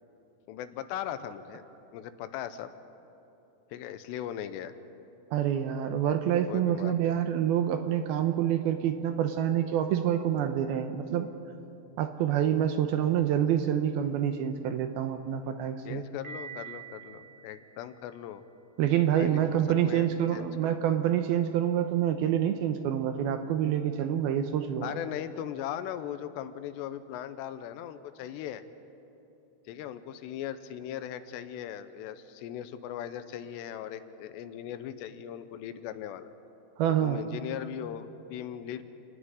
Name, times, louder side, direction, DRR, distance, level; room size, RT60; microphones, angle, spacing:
voice 1, 0.5-1.6 1.9-2.7 3.7-4.7 6.5-7.2 15.9-18.4 19.2-19.4 19.8-20.1 20.3-20.8 24.8-28.6 29.7-36.3 37.0-38.8, left 10 dB, 80° left, 11 dB, 2.9 m, -38 dB
voice 2, 5.3-11.3 12.0-16.0 18.8-24.9 36.8-37.2, right 10 dB, 80° right, 7 dB, 2.4 m, -27 dB
Piano, 16.2-18.2, right 7 dB, 60° right, 0.9 m, -45 dB
29.5 x 9.8 x 9.6 m, 2.8 s
omnidirectional pair, 4.9 m